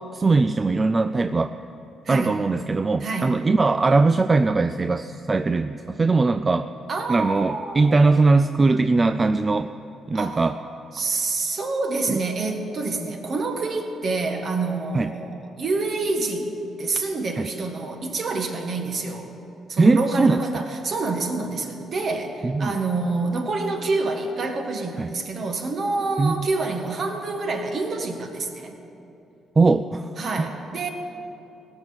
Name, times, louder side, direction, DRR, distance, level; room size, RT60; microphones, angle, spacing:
voice 1, 0.0-1.5 2.1-6.7 7.1-9.7 10.1-10.6 12.1-12.2 14.9-15.1 17.4-17.5 19.8-20.6 22.4-22.8 25.0-25.1 26.2-26.5 29.6-30.1 30.4-30.5, right 3 dB, 25° right, 9 dB, 0.3 m, -20 dB
voice 2, 3.0-3.4 6.9-8.3 10.1-10.4 10.9-16.5 16.8-19.3 19.7-28.8 30.2-30.9, right 3 dB, 50° right, 3 dB, 1.6 m, -27 dB
17.0 x 6.1 x 8.8 m, 2.8 s
cardioid pair, 90°, 0 cm